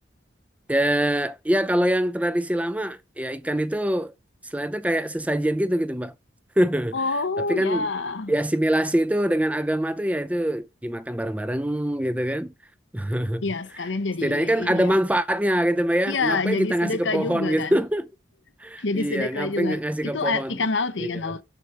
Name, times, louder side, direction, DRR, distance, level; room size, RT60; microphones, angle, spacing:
voice 1, 0.7-4.1 4.4-6.1 6.6-7.0 7.5-7.9 8.3-12.5 12.9-13.4 14.2-18.1 18.6-20.6 21.0-21.1, right 1 dB, 10° right, 0.5 m, -24 dB
voice 2, 6.9-8.3 13.4-15.0 16.1-17.8 18.8-21.4, left 3 dB, 85° left, 0.9 m, -27 dB
7.1 x 7.1 x 4.6 m
head